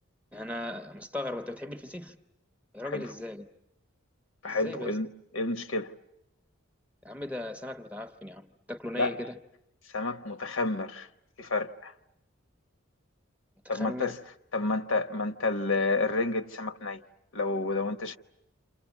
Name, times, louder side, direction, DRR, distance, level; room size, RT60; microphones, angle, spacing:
voice 1, 0.3-2.2 2.7-3.5 4.4-5.0 7.0-9.4 13.6-14.1, left 1 dB, 5° right, 1.0 m, -38 dB
voice 2, 4.4-5.1 5.3-5.9 8.9-9.2 9.9-11.1 11.4-11.9 13.7-14.2 14.5-17.0 17.3-18.2, left 3 dB, 75° left, 1.0 m, -30 dB
28.0 x 28.0 x 7.3 m
head